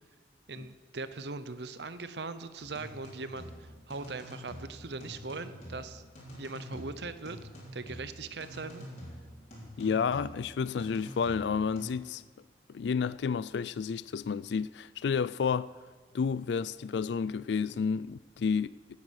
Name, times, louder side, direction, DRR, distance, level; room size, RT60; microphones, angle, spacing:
voice 1, 0.5-6.0 6.4-7.4 7.7-8.9, right 3 dB, 75° right, 0.9 m, -40 dB
sound 1, 2.6-11.9, equal, 40° left, 4.7 m, -47 dB
voice 2, 9.8-12.2 12.7-15.7 16.1-18.7, left 6 dB, 80° left, 0.4 m, -30 dB
18.0 x 9.7 x 6.5 m
head